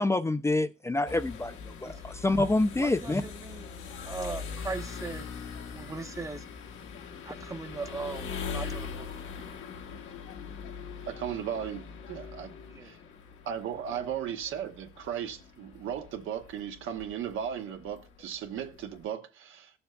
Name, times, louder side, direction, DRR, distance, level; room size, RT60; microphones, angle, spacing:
voice 1, 0.0-1.5 1.8-3.2, left 2 dB, 15° left, 0.4 m, -27 dB
sound 1, 1.1-19.1, left 5 dB, 80° left, 1.2 m, -42 dB
voice 2, 2.7-5.3 5.7-6.4 7.2-9.1 12.7-12.9 13.9-14.0, right 4 dB, 15° right, 0.8 m, -39 dB
voice 3, 11.1-12.5 12.8-13.0 13.4-19.7, right 9 dB, 80° right, 1.0 m, -36 dB
14.0 x 7.0 x 2.3 m
cardioid pair, 90°, 20 cm